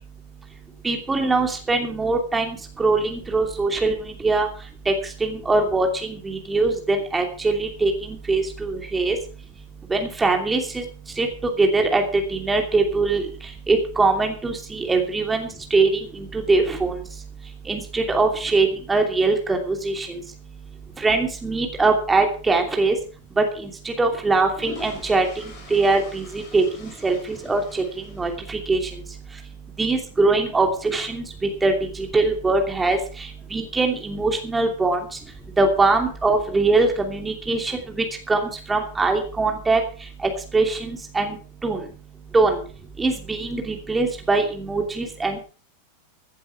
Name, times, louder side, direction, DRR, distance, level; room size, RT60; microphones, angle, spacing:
voice 1, 0.8-3.9 4.2-4.5 4.9-5.0 5.2-9.2 9.9-10.8 11.2-11.3 11.6-12.0 12.3-13.2 13.7-16.1 16.3-17.0 17.7-20.1 21.0-22.9 23.4-25.3 25.7-27.8 28.2-28.8 29.8-31.2 31.6-35.0 35.6-37.8 38.3-38.4 38.7-39.8 40.2-41.4 41.6-41.8 42.3-42.6 43.0-45.4, right 3 dB, 10° right, 3 dB, 2.8 m, -22 dB
sound 1, 24.5-28.8, left 4 dB, 35° left, 7.3 m, -44 dB
16.0 x 11.0 x 4.7 m, 0.38 s
figure-of-eight pair, 90°, 0 cm